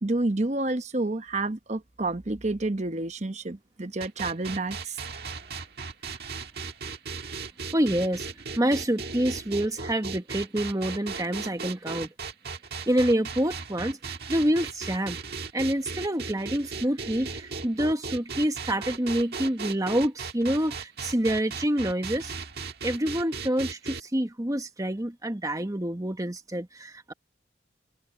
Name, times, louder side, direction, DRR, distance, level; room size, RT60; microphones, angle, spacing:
voice 1, 0.0-5.0, right 2 dB, 35° right, 1.0 m, -29 dB
sound 1, 4.0-24.0, right 4 dB, 55° right, 1.7 m, -37 dB
voice 2, 7.7-8.3 8.6-12.1 12.9-15.2 15.5-22.3 22.8-27.1, right 1 dB, 20° right, 1.2 m, -27 dB
head